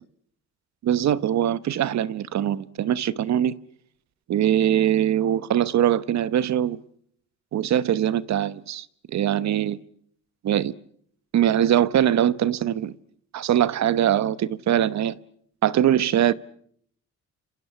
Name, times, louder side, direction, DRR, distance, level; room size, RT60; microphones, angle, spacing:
voice 1, 0.8-3.6 4.3-6.8 7.5-9.8 10.4-10.7 11.3-12.9 13.3-15.2 15.6-16.3, right 10 dB, 65° right, 1.1 m, -22 dB
30.0 x 26.5 x 5.9 m
cardioid pair, 90°, 30 cm